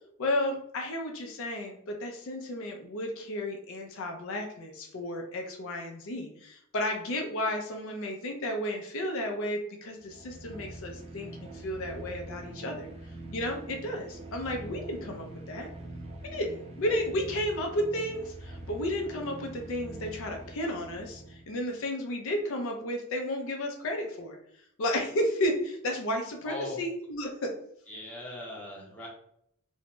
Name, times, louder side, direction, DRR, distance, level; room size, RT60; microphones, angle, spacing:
voice 1, 0.2-12.9 13.3-15.7 16.2-24.4 24.8-27.5, left 1 dB, 65° left, 2 dB, 0.5 m, -33 dB
sound 1, 9.9-21.6, right 2 dB, 30° right, 0.4 m, -44 dB
voice 2, 26.4-26.8 27.9-29.1, left 2 dB, 5° left, -4 dB, 0.7 m, -39 dB
2.6 x 2.1 x 3.0 m, 0.71 s
head